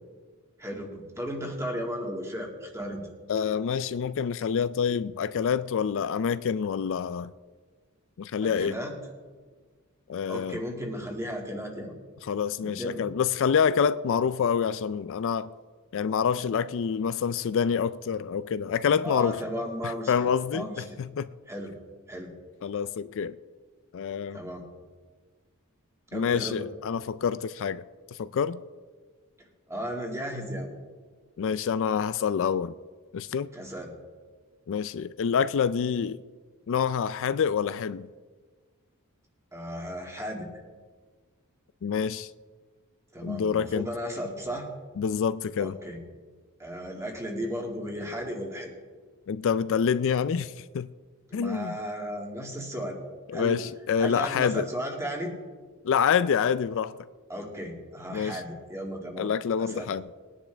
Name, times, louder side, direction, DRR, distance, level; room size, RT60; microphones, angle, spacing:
voice 1, 0.6-3.1 8.4-9.0 10.3-11.9 12.6-13.1 19.0-20.1 20.5-21.0 21.5-21.7 22.1-22.3 24.3-24.6 26.1-26.7 29.7-30.7 33.5-33.9 39.5-40.5 43.1-44.7 45.6-46.0 46.6-48.7 51.3-53.0 53.3-53.7 54.0-55.3 57.3-59.3 59.6-59.9, equal, 15° right, 2.1 m, -35 dB
voice 2, 3.3-7.3 8.2-8.8 10.1-10.6 12.3-15.5 15.9-19.4 19.8-21.3 22.6-23.4 23.9-24.4 26.1-27.8 28.2-28.6 31.4-32.7 33.1-33.5 34.7-36.2 36.7-38.1 41.8-42.3 43.2-43.9 45.0-45.7 49.3-50.9 51.3-51.8 53.3-54.7 55.8-56.9 58.1-58.4 59.2-60.0, left 7 dB, 60° left, 0.4 m, -27 dB
21.0 x 10.0 x 3.4 m
head